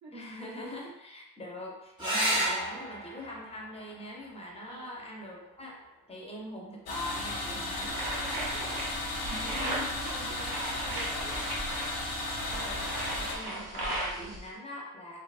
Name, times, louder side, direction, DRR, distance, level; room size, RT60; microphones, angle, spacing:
voice 1, 0.1-5.8 6.1-8.0 9.3-10.1 12.4-12.9 13.2-15.2, left 1 dB, 20° left, -2 dB, 0.4 m, -42 dB
sound 1, 2.0-7.0 8.9-9.5 13.0-13.1 13.4-13.5, right 1 dB, 15° right, 0.7 m, -35 dB
sound 2, 6.9-13.3, left 2 dB, 85° left, 0.6 m, -35 dB
sound 3, 7.7-14.5, right 1 dB, 85° right, 0.7 m, -37 dB
voice 2, 8.0-8.8 9.5-11.6 12.5-13.2, right 2 dB, 55° right, -3 dB, 0.4 m, -45 dB
2.6 x 2.1 x 2.3 m, 0.87 s
wide cardioid pair, 165°, 35 cm